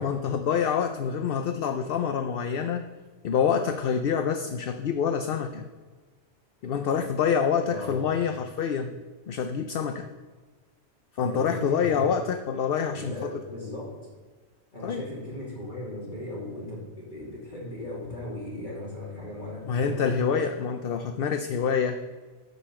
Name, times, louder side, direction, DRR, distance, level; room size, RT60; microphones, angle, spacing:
voice 1, 0.0-2.8 3.2-5.7 6.6-8.9 9.3-10.1 11.1-13.4 14.8-15.0 19.6-22.0, left 7 dB, 60° left, 8 dB, 0.7 m, -26 dB
voice 2, 7.6-8.0 11.2-12.1 12.9-13.9 14.7-20.1, left 1 dB, 40° left, -6 dB, 2.9 m, -37 dB
11.5 x 5.4 x 7.5 m, 1.4 s
omnidirectional pair, 1.2 m